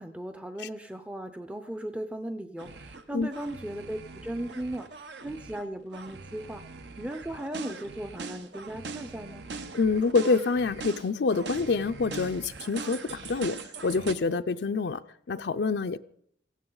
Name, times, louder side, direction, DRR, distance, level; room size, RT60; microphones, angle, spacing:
voice 1, 0.0-4.9 5.2-6.6 7.0-9.5, right 1 dB, 5° right, 0.5 m, -37 dB
sound 1, 2.6-3.0 3.3-5.6 5.9-14.1, right 4 dB, 75° right, 1.0 m, -41 dB
voice 2, 9.7-15.0 15.3-16.0, left 4 dB, 70° left, 0.5 m, -26 dB
17.5 x 15.5 x 3.9 m
head